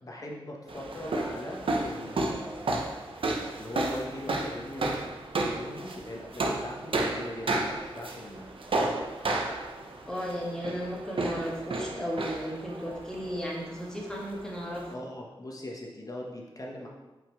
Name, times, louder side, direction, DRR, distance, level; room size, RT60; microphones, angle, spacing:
voice 1, 0.0-2.7 3.5-5.0 5.5-8.5 14.9-16.9, left 1 dB, 40° left, -1 dB, 1.4 m, -40 dB
sound 1, 0.7-14.9, right 2 dB, 70° right, 0.9 m, -33 dB
voice 2, 10.1-14.9, equal, 5° left, -3 dB, 1.7 m, -35 dB
5.6 x 5.4 x 4.7 m, 1.1 s
wide cardioid pair, 95°, 10 cm